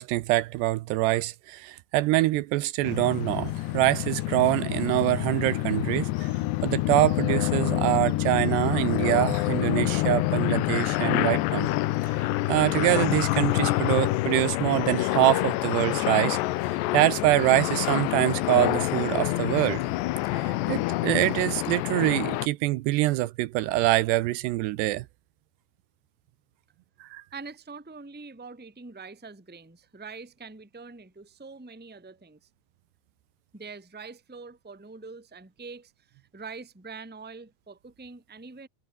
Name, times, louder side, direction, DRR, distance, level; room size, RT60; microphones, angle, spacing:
voice 1, 0.0-6.3 6.6-11.7 12.0-16.4 16.9-19.8 20.3-25.1 27.0-27.2, right 17 dB, 80° right, 2.9 m, -25 dB
sound 1, 2.8-22.5, left 18 dB, 85° left, 3.0 m, -27 dB
voice 2, 27.3-32.4 33.5-38.7, right 4 dB, 5° right, 1.6 m, -44 dB
omnidirectional pair, 5.0 m